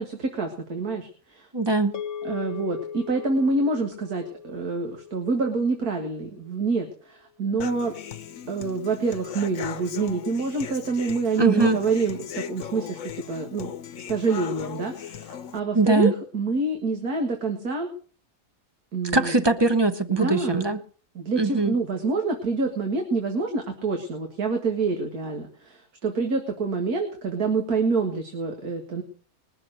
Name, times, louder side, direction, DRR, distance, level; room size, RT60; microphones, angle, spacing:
voice 1, 0.0-1.5 2.2-7.9 8.5-13.7 14.0-17.9 18.9-19.4 20.1-20.7 21.2-29.0, right 3 dB, 80° right, 3 dB, 2.3 m, -27 dB
voice 2, 1.5-1.9 11.4-11.8 15.7-16.1 19.1-20.8 21.4-21.7, right 3 dB, 20° right, 9 dB, 0.8 m, -21 dB
sound 1, 1.9-6.4, left 7 dB, 30° left, 0.8 m, -39 dB
Human voice / Acoustic guitar, 7.6-15.6, left 9 dB, 65° left, 1.2 m, -38 dB
20.5 x 7.0 x 6.4 m, 0.43 s
omnidirectional pair, 1.6 m